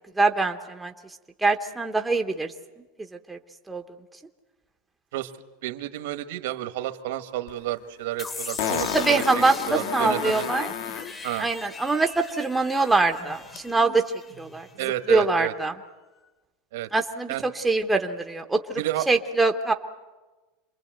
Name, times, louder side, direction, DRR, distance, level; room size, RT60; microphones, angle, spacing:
voice 1, 0.2-0.9 1.4-2.5 3.3-3.4 3.7-3.8 8.9-10.7 11.4-14.0 14.4-14.7 15.1-15.7 16.9-18.8 19.1-19.7, right 3 dB, 5° right, 4 dB, 0.8 m, -23 dB
voice 2, 5.6-10.4 11.2-11.5 14.8-15.5 16.7-16.9 17.3-17.4 18.8-19.1, right 14 dB, 70° right, 10 dB, 1.4 m, -31 dB
Fart, 7.5-7.6 8.6-11.1 13.6-13.7, left 9 dB, 60° left, 1.6 m, -31 dB
sound 1, 8.2-15.0, left 3 dB, 15° left, 1.0 m, -39 dB
27.5 x 22.0 x 7.9 m, 1.2 s
supercardioid pair, 175°, 0 cm